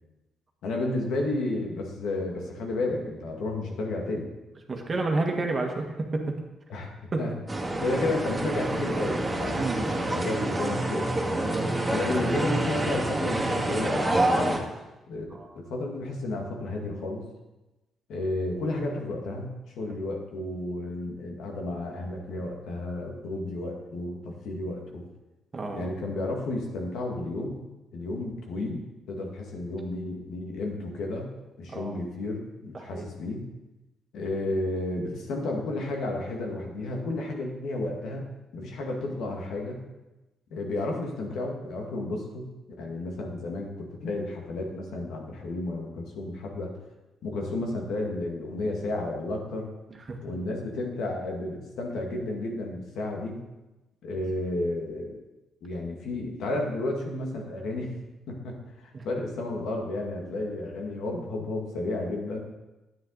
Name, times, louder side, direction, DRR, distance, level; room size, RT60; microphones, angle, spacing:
voice 1, 0.6-4.3 6.7-6.9 7.2-7.3 7.8-11.2 11.9-14.6 15.1-15.2 15.6-17.2 18.1-25.0 25.7-27.6 27.9-31.3 31.6-33.4 34.1-38.3 38.5-39.8 40.5-42.5 42.8-46.7 47.2-49.7 50.2-53.4 54.0-55.2 55.6-57.9 58.3-62.4, left 2 dB, 80° left, 0 dB, 2.0 m, -32 dB
voice 2, 4.7-6.3 7.1-7.2 9.6-9.9 11.4-11.7 15.3-15.5 25.5-25.9 31.7-31.9 32.7-33.0 50.1-50.2 58.9-59.1, right 3 dB, 35° right, 2 dB, 1.7 m, -30 dB
sound 1, 7.5-14.6, right 1 dB, 15° right, 2.2 m, -27 dB
10.0 x 9.0 x 4.0 m, 1.0 s
cardioid pair, 90°, 0 cm